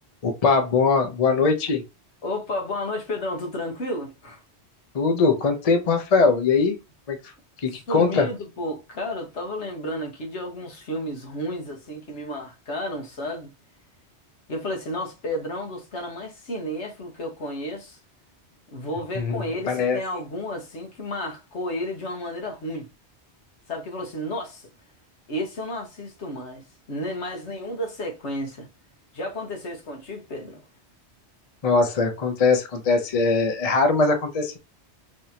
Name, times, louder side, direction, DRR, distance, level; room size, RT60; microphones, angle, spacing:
voice 1, 0.2-1.8 4.9-6.8 7.1-7.2 7.6-8.3 19.1-20.0 31.6-34.6, left 4 dB, 40° left, 0.7 m, -21 dB
voice 2, 2.2-4.4 7.7-13.5 14.5-18.0 18.7-22.9 23.7-24.7 25.3-28.7 29.1-30.6, left 1 dB, 85° left, 1.4 m, -32 dB
3.6 x 3.4 x 2.8 m
omnidirectional pair, 1.1 m